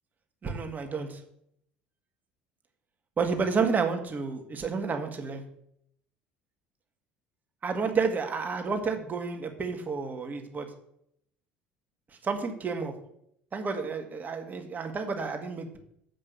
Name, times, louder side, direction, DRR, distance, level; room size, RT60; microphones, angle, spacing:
voice 1, 0.4-1.1 3.2-5.4 7.6-10.7 12.2-12.9 13.5-15.8, right 5 dB, 35° right, 5 dB, 1.8 m, -30 dB
8.2 x 5.3 x 6.8 m, 0.72 s
hypercardioid pair, 65°, 5 cm